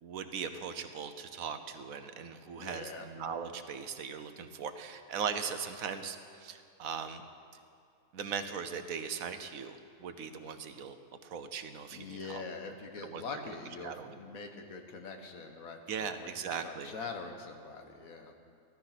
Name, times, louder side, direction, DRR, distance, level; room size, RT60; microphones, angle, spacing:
voice 1, 0.0-7.2 8.1-11.0 11.2-12.4 13.0-13.4 13.8-14.2 15.9-16.9, right 6 dB, 80° right, 9 dB, 1.3 m, -39 dB
voice 2, 2.6-3.1 11.9-18.3, left 4 dB, 80° left, 4 dB, 1.7 m, -44 dB
15.5 x 13.0 x 5.9 m, 2.4 s
omnidirectional pair, 1.4 m